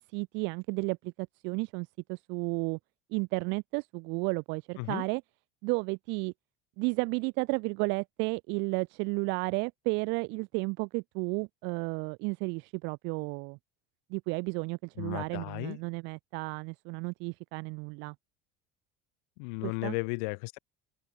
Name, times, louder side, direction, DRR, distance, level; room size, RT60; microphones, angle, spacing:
voice 1, 0.1-2.8 3.1-5.2 5.6-6.3 6.8-13.6 14.1-18.1 19.6-19.9, right 29 dB, 65° right, 1.4 m, -33 dB
voice 2, 15.0-15.8 19.4-20.6, left 34 dB, 80° left, 4.3 m, -35 dB
cardioid pair, 165°, 21 cm